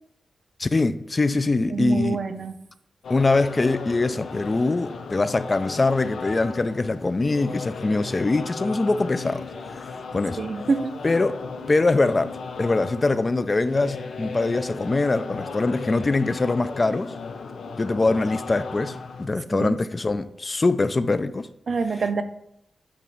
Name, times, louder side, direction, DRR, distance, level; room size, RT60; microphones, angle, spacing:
voice 1, 0.6-2.2 3.1-9.5 10.1-10.4 11.0-11.4 11.7-17.1 17.8-21.5, left 3 dB, 30° left, 0.4 m, -23 dB
voice 2, 1.7-2.5 10.4-10.9 19.5-19.8 21.7-22.2, right 4 dB, 55° right, 0.5 m, -26 dB
sound 1, 3.0-19.3, left 4 dB, 85° left, 0.6 m, -36 dB
8.6 x 3.1 x 5.3 m
wide cardioid pair, 140°, 0 cm